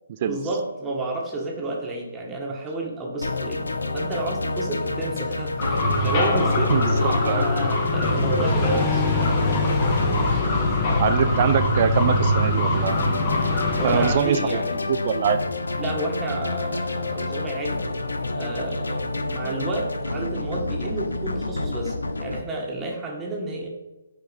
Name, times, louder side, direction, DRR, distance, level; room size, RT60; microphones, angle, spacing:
voice 1, 0.3-3.6 3.9-9.4 13.8-14.8 15.8-17.8 18.3-23.7, right 2 dB, 15° right, -1 dB, 1.7 m, -31 dB
sound 1, 3.2-22.4, left 2 dB, 85° left, 0.9 m, -28 dB
sound 2, 5.6-14.1, left 2 dB, 35° left, 1.8 m, -23 dB
voice 2, 6.7-7.4 11.0-13.0 13.8-14.6 14.9-15.4 19.4-19.5, right 8 dB, 40° right, 10 dB, 0.5 m, -24 dB
7.9 x 4.6 x 5.3 m, 1.1 s
figure-of-eight pair, 145°, 0 cm